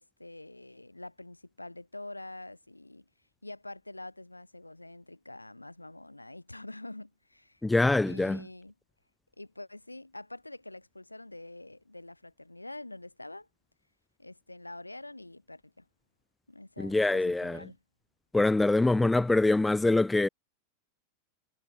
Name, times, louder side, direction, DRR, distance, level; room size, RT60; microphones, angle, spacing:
voice 1, 0.0-3.0 3.4-7.6 8.0-8.7 9.4-13.5 14.2-15.9 16.5-17.8, left 2 dB, 85° left, 7.6 m, -46 dB
voice 2, 7.6-8.4 16.8-17.6 18.3-20.3, left 2 dB, 5° left, 0.9 m, -24 dB
figure-of-eight pair, 90°, 0 cm